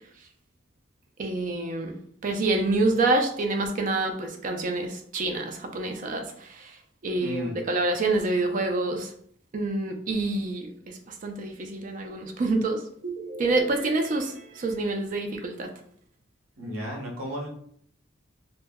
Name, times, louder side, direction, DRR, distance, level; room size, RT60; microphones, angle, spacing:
voice 1, 1.2-2.0 2.2-6.8 7.0-9.1 9.5-15.7, right 2 dB, 40° right, 4 dB, 0.3 m, -27 dB
voice 2, 7.2-7.6 16.6-17.5, equal, 85° right, -1 dB, 0.7 m, -33 dB
2.1 x 2.0 x 3.4 m, 0.63 s
head